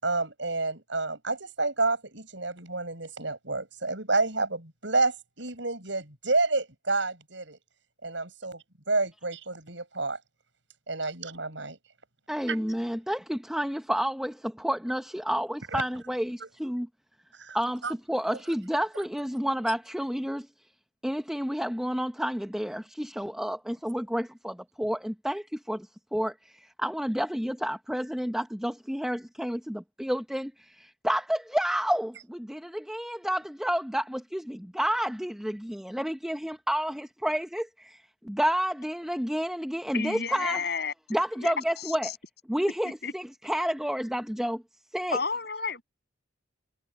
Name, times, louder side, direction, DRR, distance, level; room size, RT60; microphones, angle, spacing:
voice 1, 0.0-7.6 8.0-10.2 10.9-11.8 12.5-12.6 15.7-15.8 16.4-16.5 17.4-17.6 17.8-17.9, right 3 dB, 70° right, 7.1 m, -29 dB
voice 2, 12.3-16.9 17.5-17.8 18.1-20.5 21.0-40.6 41.1-42.1 42.5-44.6 44.9-45.2, equal, 5° right, 0.8 m, -30 dB
voice 3, 39.9-42.2 43.0-43.1 45.1-45.8, left 5 dB, 55° left, 7.2 m, -32 dB
head